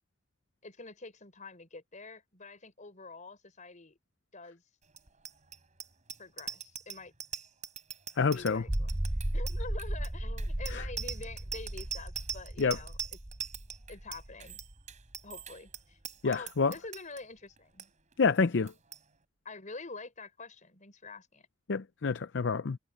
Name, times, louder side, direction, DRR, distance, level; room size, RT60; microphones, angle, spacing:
voice 1, 0.6-4.0 4.3-4.6 6.2-7.1 8.3-12.9 13.9-14.6 15.2-17.9 19.5-21.5, left 3 dB, 40° left, 5.2 m, -46 dB
Bicycle bell, 4.9-17.2 17.6-17.9 18.1-18.4 18.7-19.0, right 7 dB, 40° right, 5.0 m, -42 dB
voice 2, 8.2-8.6 10.7-10.9 12.6-12.8 16.2-16.7 18.2-18.7 21.7-22.8, left 4 dB, 70° left, 0.6 m, -28 dB
sound 1, 8.7-15.0, right 1 dB, 10° right, 0.5 m, -36 dB
head